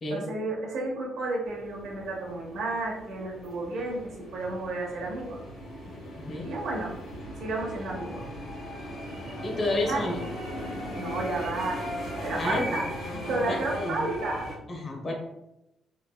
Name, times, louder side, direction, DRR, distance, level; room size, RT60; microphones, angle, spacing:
voice 1, 0.1-5.4 6.4-6.9 7.4-8.2 9.9-10.1 11.0-11.8 12.2-12.8 13.3-14.5, right 2 dB, 70° right, -2 dB, 1.0 m, -32 dB
sound 1, 1.5-14.6, equal, 70° left, 1.3 m, -38 dB
voice 2, 6.2-6.5 9.4-10.2 12.4-12.8 13.5-14.0 14.7-15.1, left 2 dB, 40° left, 0 dB, 0.9 m, -30 dB
3.2 x 3.2 x 2.3 m, 0.89 s
cardioid pair, 90°, 0 cm